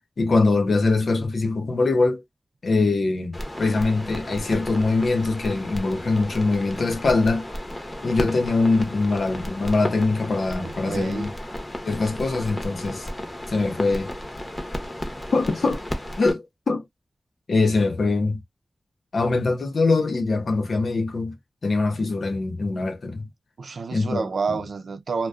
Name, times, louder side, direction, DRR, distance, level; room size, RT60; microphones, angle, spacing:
voice 1, 0.2-2.2 2.6-7.5 8.0-11.3 11.8-13.1 13.5-14.1 15.3-15.8 16.2-16.8 17.5-18.4 19.1-21.4 21.6-23.3 23.9-24.6, left 3 dB, 75° left, 0.7 m, -23 dB
sound 1, 3.3-16.3, left 1 dB, 25° left, 0.8 m, -34 dB
voice 2, 10.6-11.3 23.6-25.3, right 4 dB, 85° right, 0.5 m, -29 dB
2.3 x 2.2 x 2.4 m
cardioid pair, 60°, 0 cm